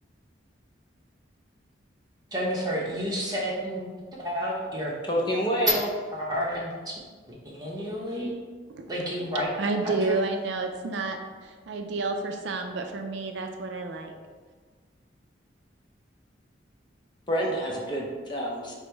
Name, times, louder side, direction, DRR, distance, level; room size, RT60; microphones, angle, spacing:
voice 1, 2.3-3.9 4.2-4.9 6.1-7.0 7.6-8.4 8.9-9.5 9.8-10.2, equal, 20° right, -4 dB, 0.8 m, -30 dB
voice 2, 5.0-5.9 17.3-18.7, equal, 25° left, -2 dB, 0.5 m, -27 dB
voice 3, 9.6-14.1, right 3 dB, 65° right, 4 dB, 0.3 m, -30 dB
5.1 x 2.0 x 4.4 m, 1.5 s
head